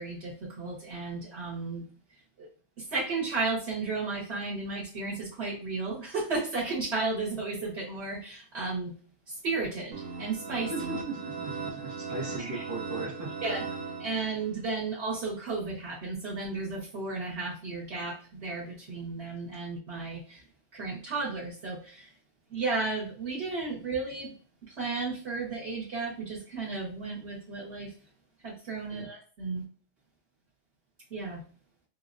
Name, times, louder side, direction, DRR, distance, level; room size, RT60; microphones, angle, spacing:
voice 1, 0.0-1.9 2.4-2.5 2.8-8.9 9.3-10.7 12.4-12.6 13.4-13.7 14.0-20.4 20.7-22.1 22.5-24.3 24.7-27.9 28.4-29.6 31.1-31.4, right 3 dB, 60° right, -4 dB, 1.1 m, -34 dB
sound 1, 9.9-14.7, right 4 dB, 90° right, 1.1 m, -38 dB
voice 2, 10.7-13.3 28.9-29.1, right 3 dB, 30° right, -2 dB, 0.3 m, -37 dB
4.7 x 2.1 x 2.4 m, 0.40 s
omnidirectional pair, 1.3 m